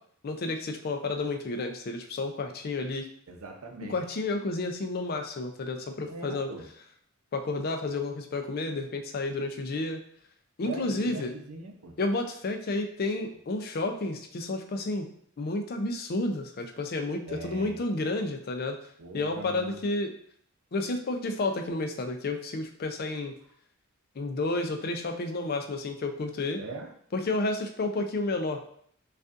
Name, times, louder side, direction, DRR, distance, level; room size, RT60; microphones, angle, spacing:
voice 1, 0.2-3.1 3.9-6.5 7.3-10.0 10.6-11.3 12.0-15.1 15.4-18.8 19.1-20.1 20.7-23.3 24.2-26.6 27.1-28.7, left 2 dB, 45° left, 6 dB, 0.4 m, -31 dB
voice 2, 3.3-4.0 6.0-6.7 10.6-12.0 17.3-17.8 19.0-19.8 26.6-26.9, right 3 dB, 75° right, 3 dB, 0.6 m, -41 dB
5.1 x 2.4 x 2.5 m, 0.63 s
head